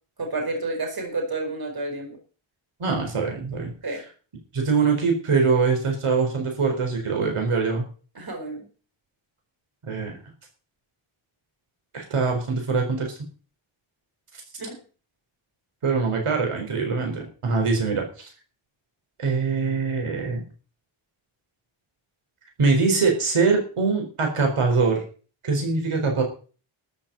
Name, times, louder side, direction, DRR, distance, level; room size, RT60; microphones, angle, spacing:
voice 1, 0.2-2.2 3.8-4.0 8.1-8.7 14.6-14.8, right 2 dB, 45° right, 3 dB, 4.8 m, -30 dB
voice 2, 2.8-3.7 4.5-7.8 9.9-10.2 11.9-13.2 15.8-18.3 19.2-20.5 22.6-25.0 25.4-26.2, right 4 dB, 80° right, 2 dB, 4.4 m, -23 dB
13.5 x 7.4 x 7.6 m, 0.38 s
wide cardioid pair, 140°, 50 cm